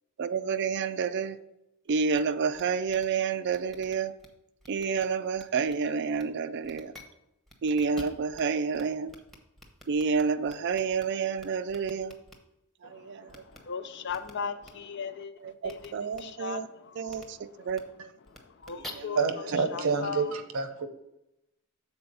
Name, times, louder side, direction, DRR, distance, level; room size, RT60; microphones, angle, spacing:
voice 1, 0.2-1.4 1.9-4.1 4.7-6.9 7.6-9.1 9.9-12.1 12.8-13.4 15.4-16.7 17.0-18.1 18.9-19.1 19.8-20.0, right 5 dB, 55° right, 12 dB, 0.4 m, -29 dB
sound 1, 2.1-2.2 2.5-2.6 2.9-3.0 3.5-4.3 4.6-5.0 5.3-5.7 6.1-6.2 6.6-7.0 7.5-8.4 8.7-8.8 9.1-11.0 11.4-12.3 13.3-13.6 14.1-14.3 14.6-14.7 15.6-15.9 16.1-16.2 17.1-17.2 17.7-17.8 18.3-18.9, left 1 dB, ahead, 0.9 m, -48 dB
voice 2, 12.8-17.7 18.3-20.4, left 6 dB, 55° left, 10 dB, 0.5 m, -39 dB
voice 3, 19.2-20.9, right 5 dB, 75° right, 8 dB, 0.9 m, -28 dB
7.1 x 4.3 x 5.3 m, 0.87 s
head